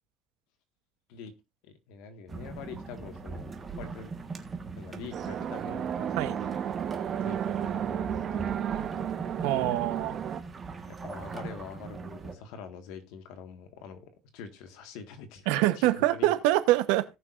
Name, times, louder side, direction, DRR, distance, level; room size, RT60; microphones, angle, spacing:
voice 1, 1.6-3.4 3.8-4.1 4.8-6.5 7.2-9.4 10.9-15.5 15.7-16.3, left 6 dB, 80° left, 1.8 m, -45 dB
sound 1, 2.3-12.3, right 4 dB, 25° right, 1.5 m, -41 dB
sound 2, 5.1-10.4, right 9 dB, 40° right, 0.9 m, -33 dB
voice 2, 9.4-10.2 15.5-17.0, right 15 dB, 85° right, 1.0 m, -25 dB
18.0 x 6.0 x 2.6 m
cardioid pair, 135°, 0 cm